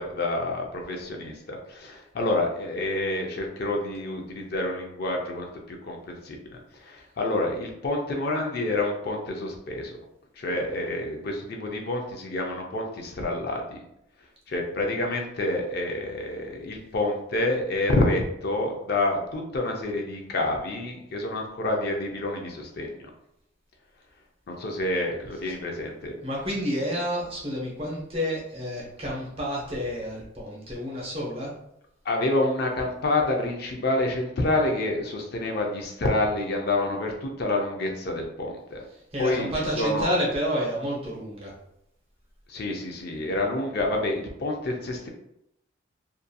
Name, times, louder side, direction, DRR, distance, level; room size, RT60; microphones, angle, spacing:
voice 1, 0.0-10.0 10.4-13.8 14.5-22.9 24.5-26.2 32.0-38.8 39.2-40.1 42.5-45.1, left 2 dB, 50° left, 1 dB, 0.4 m, -28 dB
voice 2, 26.2-31.5 39.1-41.5, equal, 30° right, -4 dB, 0.7 m, -29 dB
2.7 x 2.5 x 2.2 m, 0.79 s
head